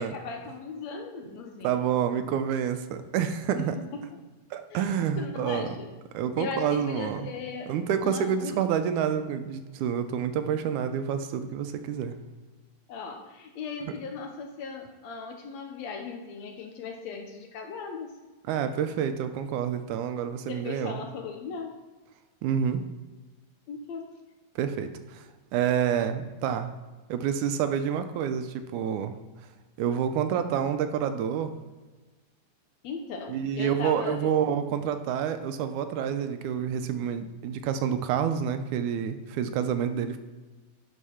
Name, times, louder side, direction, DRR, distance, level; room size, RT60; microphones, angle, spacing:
voice 1, 0.0-1.9 3.6-4.1 4.7-5.9 6.4-7.7 8.0-8.6 12.9-18.1 20.4-21.8 23.7-24.1 32.8-34.3, left 5 dB, 70° left, 4 dB, 1.8 m, -38 dB
voice 2, 1.6-3.8 4.5-5.7 6.1-7.3 7.7-12.2 18.5-21.0 22.4-22.8 24.6-25.3 25.5-26.7 27.1-29.2 29.8-31.6 33.3-40.2, right 8 dB, 80° right, 9 dB, 2.0 m, -28 dB
11.0 x 4.5 x 5.7 m, 1.2 s
omnidirectional pair, 3.6 m